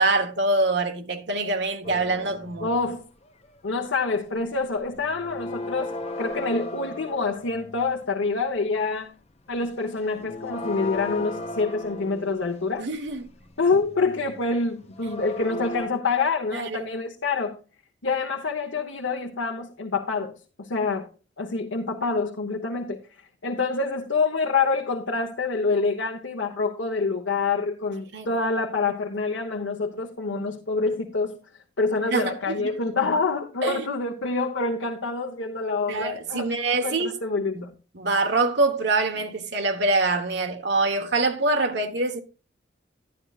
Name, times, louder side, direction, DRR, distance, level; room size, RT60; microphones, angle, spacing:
voice 1, 0.0-2.7 12.8-13.2 16.5-16.9 28.1-28.3 32.1-32.7 33.6-33.9 35.9-37.2 37.6-37.7 37.9-42.2, right 2 dB, 65° right, 1.1 m, -25 dB
sound 1, 1.8-3.0 3.2-3.6 3.8-4.6 4.8-7.9 9.6-9.7 9.9-15.9, left 2 dB, 35° left, 1.1 m, -37 dB
voice 2, 2.6-3.1 3.6-9.1 9.5-12.9 13.6-17.6 18.0-21.1 21.4-23.0 23.4-31.4 31.8-36.5 36.8-37.7, left 4 dB, 85° left, 1.1 m, -26 dB
11.5 x 11.5 x 2.4 m
head